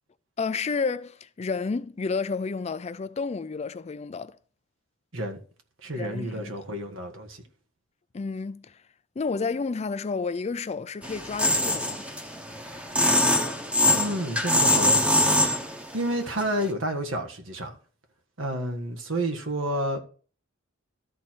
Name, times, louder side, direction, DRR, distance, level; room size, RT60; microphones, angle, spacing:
voice 1, 0.4-4.3 6.0-6.6 8.1-8.8 9.2-12.1, left 4 dB, 35° left, 0.4 m, -31 dB
voice 2, 5.8-7.4 13.9-15.2 15.9-17.8 18.4-20.0, right 1 dB, 75° right, 1.6 m, -30 dB
sound 1, 11.0-16.0 16.4-16.7, left 1 dB, 5° right, 1.0 m, -23 dB
13.0 x 4.5 x 4.5 m
head